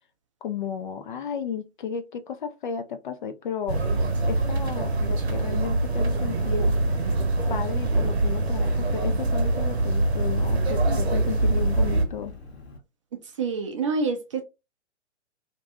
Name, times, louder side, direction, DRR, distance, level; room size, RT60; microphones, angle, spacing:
voice 1, 0.4-6.8 7.5-12.3, left 7 dB, 45° left, 0.4 m, -34 dB
sound 1, 3.7-12.0, right 2 dB, 65° right, 0.8 m, -24 dB
Engine, 6.3-12.8, left 2 dB, 60° left, 1.1 m, -45 dB
voice 2, 13.4-14.4, right 4 dB, 30° right, 0.4 m, -26 dB
2.6 x 2.2 x 2.6 m
figure-of-eight pair, 115°, 35 cm